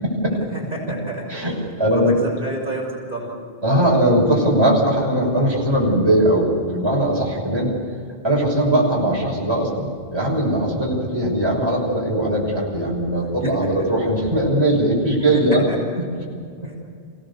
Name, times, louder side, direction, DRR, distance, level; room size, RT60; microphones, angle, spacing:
voice 1, 0.0-0.4 1.3-2.1 3.6-7.7 8.2-15.6 16.0-16.3, right 1 dB, 25° right, -4 dB, 5.9 m, -20 dB
voice 2, 0.5-1.4 1.8-3.4 13.4-13.7 15.3-15.8 16.6-16.7, right 2 dB, 55° right, -2 dB, 6.5 m, -30 dB
28.5 x 18.0 x 7.0 m, 2.2 s
omnidirectional pair, 1.0 m